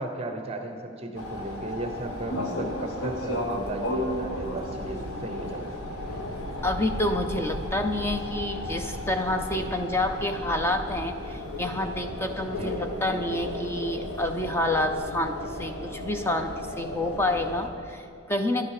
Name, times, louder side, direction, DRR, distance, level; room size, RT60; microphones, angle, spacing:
voice 1, 0.0-5.7 12.6-12.9, right 2 dB, 30° right, 5 dB, 1.0 m, -35 dB
sound 1, 1.1-17.7, left 1 dB, 80° left, 1.4 m, -34 dB
voice 2, 6.6-18.7, left 1 dB, 10° left, 6 dB, 0.6 m, -28 dB
13.0 x 11.5 x 4.9 m, 2.5 s
head